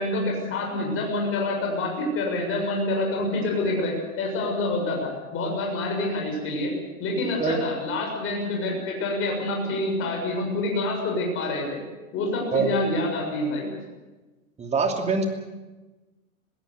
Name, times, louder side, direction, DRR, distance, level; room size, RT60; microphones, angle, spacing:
voice 1, 0.0-6.7 7.0-11.8 12.1-13.7, left 2 dB, 30° left, 0 dB, 7.0 m, -27 dB
voice 2, 14.6-15.2, right 5 dB, 15° right, 4 dB, 2.8 m, -24 dB
21.5 x 17.0 x 8.2 m, 1.1 s
hypercardioid pair, 130°, 42 cm